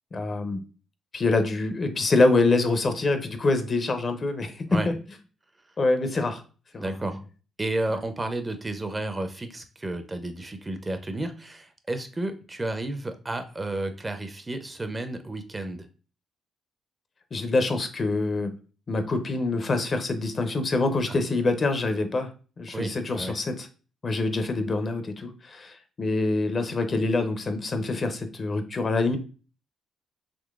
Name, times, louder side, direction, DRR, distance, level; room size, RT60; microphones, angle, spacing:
voice 1, 0.1-0.6 1.1-4.9 5.8-6.4 6.7-6.9 17.3-18.5 18.9-22.3 22.6-23.7 24.0-29.2, left 3 dB, 40° left, 8 dB, 0.5 m, -25 dB
voice 2, 6.8-7.2 7.6-15.9 21.1-21.2 22.7-23.3, right 2 dB, 20° right, 8 dB, 0.4 m, -32 dB
3.7 x 2.9 x 2.3 m, 0.36 s
cardioid pair, 90°, 0 cm